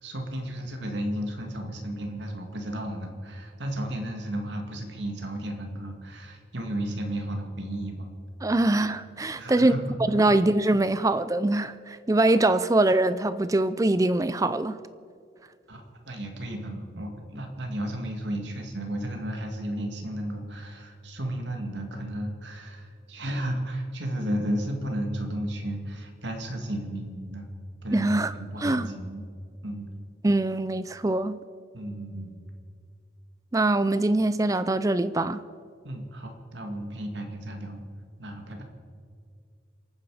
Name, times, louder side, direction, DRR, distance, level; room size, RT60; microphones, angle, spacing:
voice 1, 0.0-8.1 9.4-10.0 15.7-27.5 27.8-29.2 29.6-29.9 31.7-32.5 35.8-37.9 38.2-38.6, right 1 dB, 70° right, 2.2 m, -33 dB
voice 2, 8.4-9.7 10.1-14.8 27.9-28.3 28.6-28.9 30.2-31.4 33.5-35.4, right 2 dB, 15° right, 0.4 m, -23 dB
28.0 x 9.6 x 4.9 m
head